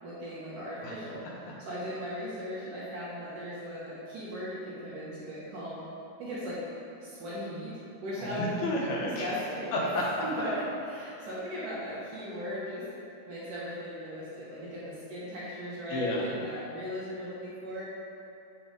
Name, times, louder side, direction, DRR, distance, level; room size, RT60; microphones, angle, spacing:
voice 1, 0.0-5.8 6.2-6.6 7.0-8.6 9.2-9.7 10.2-12.9 13.3-17.9, equal, 60° right, -9 dB, 2.5 m, -38 dB
voice 2, 8.2-9.3 9.7-10.0 11.2-11.3 15.9-16.3, left 1 dB, 70° left, -4 dB, 2.7 m, -31 dB
8.0 x 6.8 x 3.9 m, 2.7 s
omnidirectional pair, 5.2 m